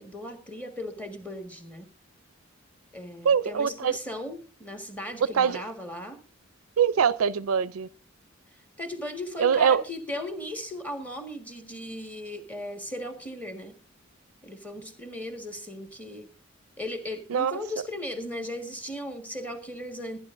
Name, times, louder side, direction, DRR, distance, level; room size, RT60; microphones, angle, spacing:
voice 1, 0.0-1.9 2.9-6.2 8.8-13.7 14.4-16.3 16.8-20.2, left 1 dB, 5° left, 1.6 m, -37 dB
voice 2, 3.2-4.0 5.2-5.6 6.8-7.9 9.4-9.8 17.3-17.6, right 7 dB, 85° right, 0.5 m, -23 dB
21.5 x 10.0 x 2.6 m
head